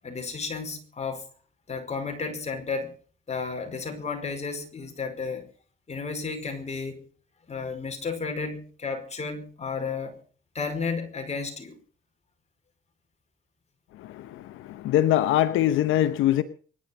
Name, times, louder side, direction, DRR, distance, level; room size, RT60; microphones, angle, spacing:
voice 1, 0.0-1.3 1.7-2.9 3.3-5.5 5.9-7.1 7.5-10.2 10.6-11.8, left 4 dB, 35° left, 5.0 m, -32 dB
voice 2, 14.0-16.4, left 12 dB, 90° left, 1.0 m, -23 dB
24.0 x 11.0 x 5.3 m
cardioid pair, 90°, 20 cm